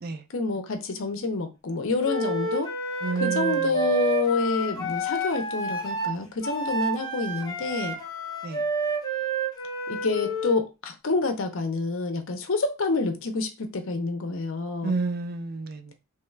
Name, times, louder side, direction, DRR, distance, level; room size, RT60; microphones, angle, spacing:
voice 1, 0.3-2.7 3.2-8.0 9.9-15.0, left 3 dB, 60° left, 0.6 m, -28 dB
Wind instrument woodwind instrument, 2.0-10.6, right 2 dB, 20° left, 0.6 m, -29 dB
voice 2, 3.0-3.7 8.4-8.6 14.8-15.9, right 3 dB, 45° right, 0.3 m, -30 dB
3.1 x 2.3 x 3.2 m
head